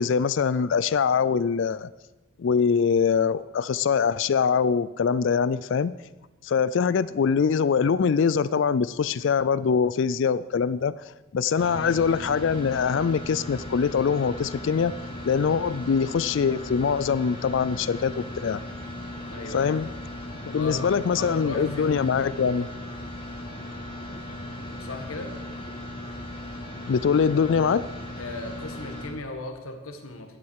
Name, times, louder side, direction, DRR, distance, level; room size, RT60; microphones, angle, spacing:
voice 1, 0.0-1.9 2.4-5.9 6.4-10.9 11.3-14.9 15.3-18.6 19.5-19.9 20.5-22.7 26.9-27.9, left 6 dB, 55° left, 17 dB, 0.3 m, -23 dB
voice 2, 11.5-11.8 19.3-20.0 20.5-22.1 22.5-22.6 24.8-25.4 28.2-30.4, left 2 dB, 75° left, 5 dB, 1.7 m, -37 dB
sound 1, 11.6-29.1, left 1 dB, 25° left, 2.3 m, -37 dB
14.5 x 10.5 x 4.7 m, 1.1 s
head